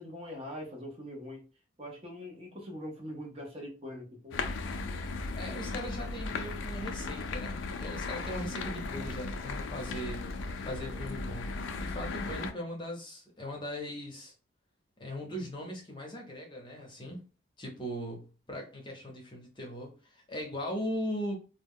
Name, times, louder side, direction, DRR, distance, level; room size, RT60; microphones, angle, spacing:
voice 1, 0.0-1.4 1.8-4.4, equal, 30° right, 0 dB, 0.7 m, -42 dB
sound 1, 4.3-12.5, left 3 dB, 75° left, 0.4 m, -36 dB
voice 2, 5.4-10.2 10.6-11.5 11.8-14.3 15.0-17.2 17.6-21.4, equal, 25° left, 0 dB, 0.7 m, -39 dB
2.1 x 2.1 x 3.5 m, 0.34 s
head